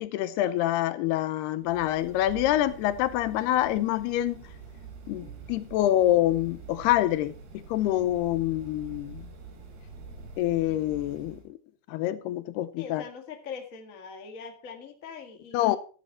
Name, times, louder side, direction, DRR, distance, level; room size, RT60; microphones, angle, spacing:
voice 1, 0.0-4.4 5.1-7.3 7.7-9.3 10.4-11.4 11.9-13.0 15.5-15.8, left 13 dB, 80° left, 2.7 m, -26 dB
sound 1, 1.6-11.5, right 5 dB, 80° right, 4.1 m, -46 dB
voice 2, 12.8-15.7, left 6 dB, 55° left, 0.9 m, -42 dB
13.0 x 10.0 x 4.3 m
omnidirectional pair, 4.7 m